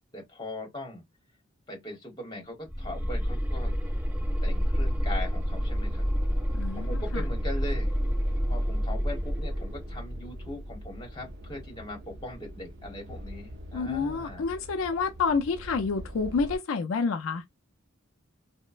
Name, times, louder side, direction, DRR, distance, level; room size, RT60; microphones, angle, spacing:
voice 1, 0.1-1.0 1.7-3.8 4.4-6.1 6.7-8.0 8.5-14.4, left 1 dB, 20° left, 1.1 m, -40 dB
sound 1, 2.7-11.6, equal, 10° right, 0.4 m, -29 dB
sound 2, 4.5-16.6, equal, 60° right, 0.6 m, -44 dB
voice 2, 6.5-6.9 7.1-7.2 13.7-17.4, left 4 dB, 75° left, 0.4 m, -28 dB
3.0 x 2.0 x 2.4 m
head